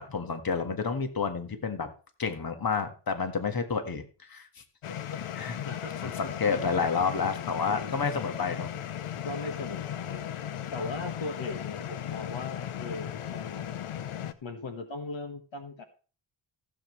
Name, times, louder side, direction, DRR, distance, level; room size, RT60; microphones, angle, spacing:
voice 1, 0.0-1.9 2.2-4.6 5.3-5.6 6.0-8.7, left 5 dB, 45° left, 7 dB, 1.7 m, -30 dB
sound 1, 4.8-14.3, left 10 dB, 85° left, 0.9 m, -37 dB
voice 2, 5.6-6.1 7.7-8.1 9.2-10.3 10.7-15.8, left 3 dB, 65° left, 6 dB, 1.6 m, -39 dB
15.5 x 7.7 x 3.2 m, 0.37 s
cardioid pair, 75°, 49 cm